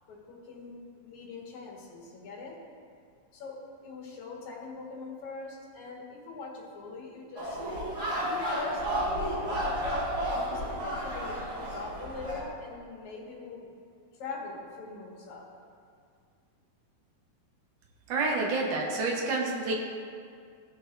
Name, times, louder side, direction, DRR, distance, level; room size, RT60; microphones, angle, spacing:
voice 1, 0.1-2.6 3.3-3.6 3.8-7.6 8.2-9.8 10.3-13.7 14.1-15.4, left 3 dB, 65° left, -3 dB, 3.1 m, -42 dB
sound 1, 7.4-12.4, equal, 40° right, 1.8 m, -32 dB
voice 2, 18.1-19.8, right 3 dB, 80° right, -1 dB, 2.6 m, -28 dB
16.5 x 6.6 x 2.6 m, 2.2 s
omnidirectional pair, 3.6 m